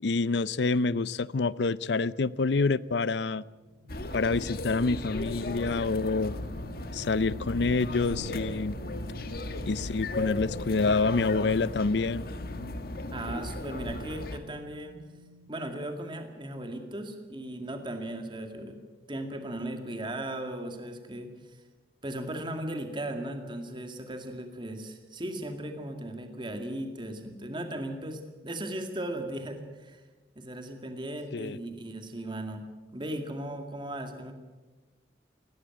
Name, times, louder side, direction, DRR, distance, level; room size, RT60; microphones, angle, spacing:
voice 1, 0.0-3.4 4.1-6.3 6.9-8.8 9.6-12.3 31.3-31.6, left 3 dB, 70° left, 19 dB, 0.6 m, -27 dB
sound 1, 3.4-15.9 16.3-16.5, left 1 dB, 70° right, 3.8 m, -47 dB
sound 2, 3.9-14.4, left 2 dB, 55° left, 1.6 m, -36 dB
voice 2, 13.1-15.0 15.5-18.8 19.1-21.3 22.0-30.0 30.4-32.7 32.9-34.3, right 1 dB, 25° right, 5 dB, 2.1 m, -37 dB
18.5 x 18.0 x 9.1 m, 1.2 s
head